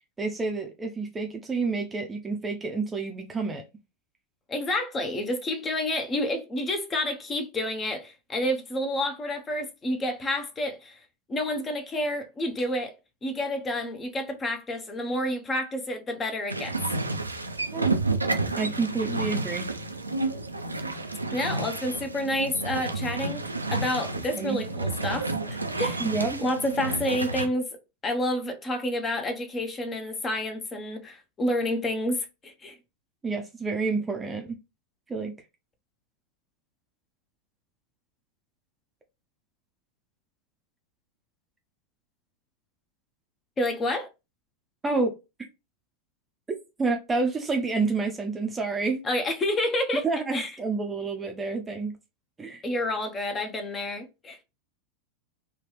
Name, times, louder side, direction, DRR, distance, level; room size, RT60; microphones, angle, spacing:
voice 1, 0.2-3.6 17.7-17.9 18.5-19.7 24.3-24.6 26.0-26.4 33.2-34.6 35.1-35.4 44.8-45.1 46.8-49.0 50.0-52.0 52.4-52.6, right 4 dB, 15° right, 0.6 m, -29 dB
voice 2, 4.5-11.0 11.3-12.9 13.2-16.8 21.3-26.0 26.4-27.7 28.0-32.8 43.6-44.1 49.0-50.0 50.3-50.5 52.6-54.4, left 1 dB, 20° left, 0.7 m, -29 dB
sound 1, 16.5-27.5, right 3 dB, 85° right, 0.4 m, -30 dB
4.1 x 2.3 x 3.0 m
figure-of-eight pair, 90°, 0 cm